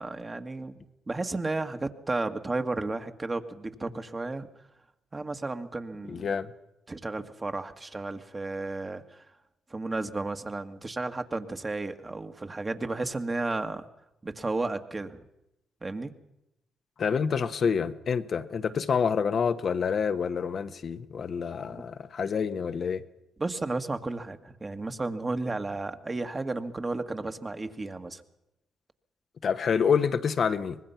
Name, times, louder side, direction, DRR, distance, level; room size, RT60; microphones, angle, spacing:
voice 1, 0.0-4.5 5.1-6.3 6.9-9.2 9.7-13.9 14.2-15.2 15.8-16.1 21.6-21.8 23.4-28.2, right 2 dB, 30° right, 1.9 m, -33 dB
voice 2, 6.1-6.5 17.0-23.0 29.4-30.8, left 6 dB, 55° left, 1.2 m, -27 dB
24.5 x 20.5 x 5.8 m
supercardioid pair, 55°, 0 cm